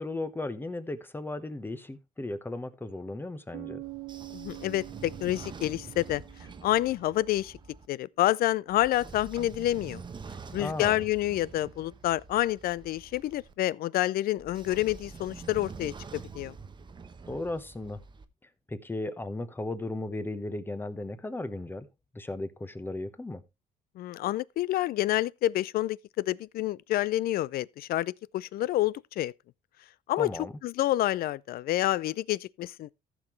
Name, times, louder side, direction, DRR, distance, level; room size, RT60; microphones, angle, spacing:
voice 1, 0.0-3.8 10.5-11.0 17.3-18.0 18.7-21.9 22.1-23.4 30.2-30.5, left 2 dB, 10° left, 1.0 m, -36 dB
Bass guitar, 3.5-7.4, right 24 dB, 75° right, 0.7 m, -45 dB
Train / Sliding door, 3.8-7.9 8.7-13.5 14.4-18.3, right 5 dB, 25° right, 0.9 m, -46 dB
voice 2, 4.3-6.2 6.6-7.6 7.9-10.0 10.5-16.5 24.0-29.3 30.1-30.3 30.6-32.9, left 15 dB, 60° left, 0.4 m, -28 dB
14.5 x 6.0 x 3.1 m
cardioid pair, 110°, 17 cm